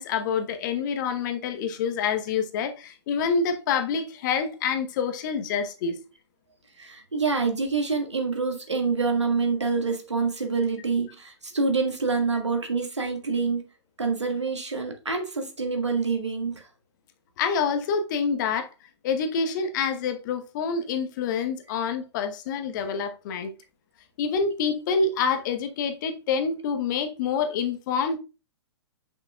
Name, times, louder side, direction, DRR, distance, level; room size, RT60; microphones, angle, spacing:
voice 1, 0.0-6.0 17.4-18.7 19.0-23.5 24.2-28.2, left 5 dB, 45° left, 1.0 m, -27 dB
voice 2, 6.8-13.6 14.0-16.7, right 4 dB, 80° right, 1.8 m, -26 dB
7.8 x 5.9 x 2.3 m
figure-of-eight pair, 110°, 15 cm